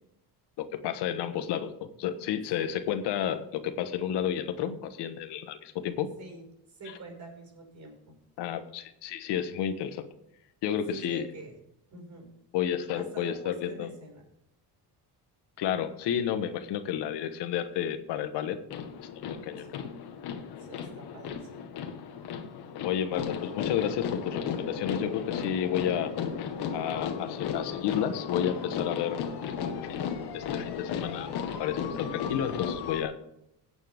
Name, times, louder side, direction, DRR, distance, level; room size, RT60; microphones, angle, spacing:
voice 1, 0.6-6.1 8.4-10.0 10.6-11.2 12.5-13.9 15.6-18.6 19.3-19.7 22.8-26.1 26.7-29.2 29.8-30.1 30.3-31.3 31.6-33.2, left 9 dB, 90° left, 9 dB, 1.4 m, -31 dB
voice 2, 6.2-8.2 10.9-11.6 11.9-12.3 13.0-14.2 19.6-19.8 20.6-21.7, right 3 dB, 45° right, 1 dB, 5.5 m, -46 dB
sound 1, 18.7-33.0, left 7 dB, 70° left, 1.7 m, -35 dB
16.5 x 8.8 x 3.6 m, 0.78 s
cardioid pair, 135°, 40 cm